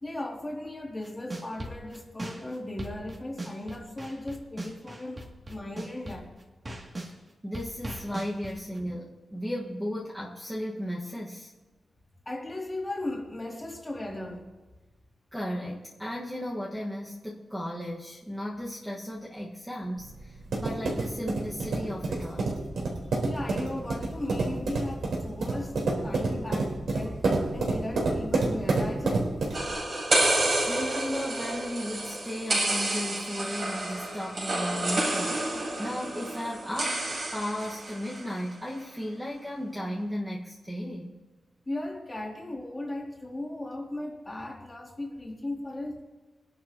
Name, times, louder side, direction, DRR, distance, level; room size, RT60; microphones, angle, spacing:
voice 1, 0.0-6.3 12.3-14.4 23.2-29.3 41.7-46.0, left 1 dB, 20° left, -1 dB, 2.6 m, -37 dB
sound 1, 1.0-7.1 7.5-8.8, right 1 dB, 30° right, 2.4 m, -39 dB
voice 2, 7.4-11.5 15.3-22.5 30.6-35.4 35.8-37.1 37.3-41.2, equal, 5° right, -5 dB, 1.5 m, -35 dB
sound 2, 20.0-29.7, right 3 dB, 80° right, 3.8 m, -29 dB
sound 3, 29.5-38.3, right 2 dB, 50° right, 4.1 m, -29 dB
23.0 x 11.0 x 2.9 m, 1.3 s
wide cardioid pair, 155°, 0 cm